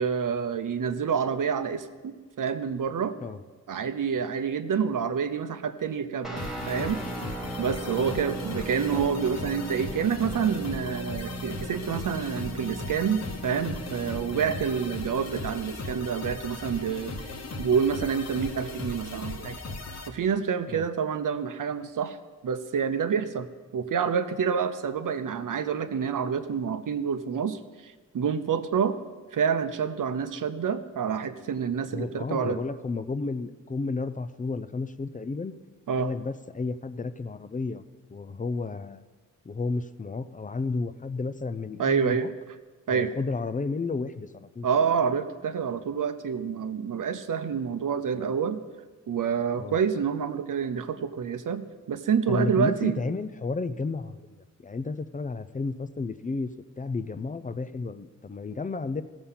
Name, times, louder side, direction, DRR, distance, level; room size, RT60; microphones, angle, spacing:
voice 1, 0.0-3.2 3.7-7.0 7.6-17.3 17.6-19.6 20.1-22.2 22.4-23.5 23.7-29.0 29.3-32.6 35.9-36.1 41.8-42.3 42.9-43.1 44.6-48.6 49.1-53.0, right 7 dB, 70° right, 10 dB, 0.7 m, -28 dB
Guitar, 6.2-15.4, right 1 dB, ahead, 1.2 m, -39 dB
sound 1, 6.4-20.1, left 2 dB, 50° left, 1.1 m, -37 dB
voice 2, 31.9-35.6 36.0-37.8 38.1-39.0 39.5-42.3 42.9-44.7 49.6-49.8 52.3-54.2 54.6-56.5 56.8-59.0, left 3 dB, 25° left, 13 dB, 0.4 m, -32 dB
16.0 x 7.0 x 5.7 m, 1.3 s
wide cardioid pair, 130°, 33 cm